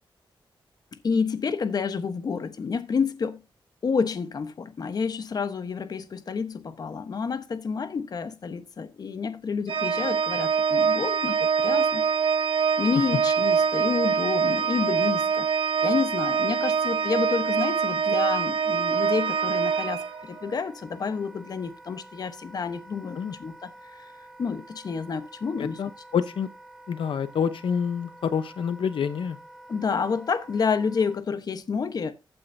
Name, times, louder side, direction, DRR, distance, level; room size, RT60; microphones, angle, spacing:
voice 1, 0.9-3.4 3.8-12.1 12.8-15.5 15.8-23.7 24.0-24.1 24.4-25.8 29.7-32.1, left 5 dB, 45° left, 1.1 m, -29 dB
Organ, 9.7-20.5, right 6 dB, 85° right, 1.1 m, -24 dB
Wind instrument woodwind instrument, 18.9-31.2, right 1 dB, 5° right, 2.5 m, -48 dB
voice 2, 25.6-26.5 26.9-29.4, left 7 dB, 80° left, 0.9 m, -27 dB
15.0 x 9.0 x 2.7 m
wide cardioid pair, 170°, 9 cm